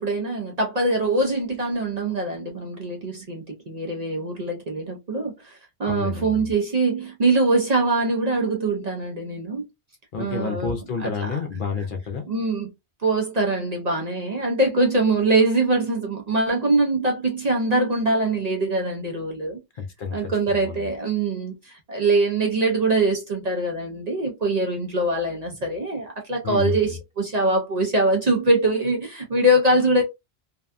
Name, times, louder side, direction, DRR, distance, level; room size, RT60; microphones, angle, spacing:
voice 1, 0.0-9.6 10.2-11.4 12.3-12.7 13.0-19.6 20.1-30.0, right 2 dB, 45° right, 0.6 m, -23 dB
voice 2, 5.9-6.5 10.1-12.3 19.8-20.9 26.4-27.0, left 5 dB, 60° left, 0.6 m, -30 dB
2.6 x 2.2 x 2.4 m
omnidirectional pair, 1.1 m